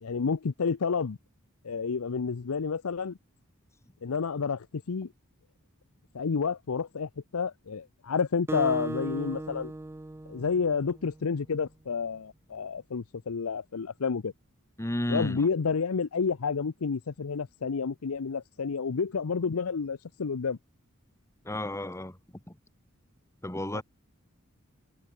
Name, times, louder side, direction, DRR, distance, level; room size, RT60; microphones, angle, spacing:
voice 1, 0.0-1.2 1.6-3.2 4.0-5.1 6.1-9.7 10.3-14.3 15.1-20.6 23.7-23.8, left 5 dB, 85° left, 0.6 m, -30 dB
Acoustic guitar, 8.5-11.3, right 2 dB, 10° right, 0.3 m, -37 dB
voice 2, 14.8-15.5 21.4-22.6 23.4-23.8, left 1 dB, 15° left, 1.4 m, -33 dB
head